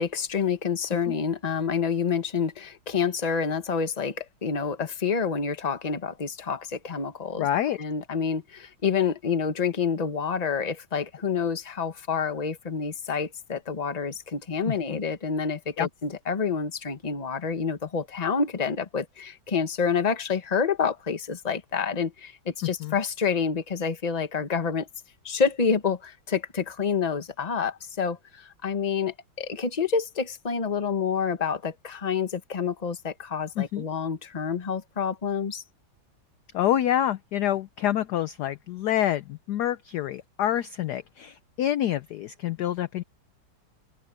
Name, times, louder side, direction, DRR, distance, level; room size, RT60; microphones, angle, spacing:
voice 1, 0.0-7.5 7.8-24.9 25.2-35.6, left 6 dB, 25° left, 1.1 m, -28 dB
voice 2, 7.4-7.8 14.7-15.0 15.8-15.9 22.6-22.9 33.6-33.9 36.5-43.0, left 11 dB, 70° left, 1.0 m, -27 dB
omnidirectional pair, 2.2 m